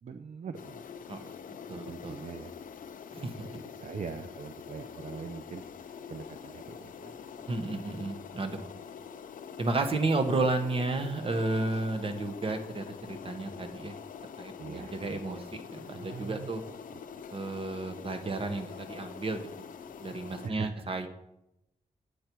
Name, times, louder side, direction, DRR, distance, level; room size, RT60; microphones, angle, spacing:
voice 1, 0.0-0.8 1.2-1.4 1.8-2.5 3.2-7.5 14.6-15.4 15.9-16.5 16.9-17.0 20.4-20.8, right 5 dB, 60° right, 8 dB, 0.5 m, -43 dB
sound 1, 0.5-20.5, left 7 dB, 85° left, 0.5 m, -45 dB
voice 2, 1.7-2.2 3.1-3.3 7.5-8.7 9.6-14.0 14.4-16.6 17.3-19.7 20.0-21.1, right 2 dB, 40° right, 7 dB, 1.0 m, -32 dB
8.5 x 8.2 x 4.5 m, 0.88 s
wide cardioid pair, 125°, 14 cm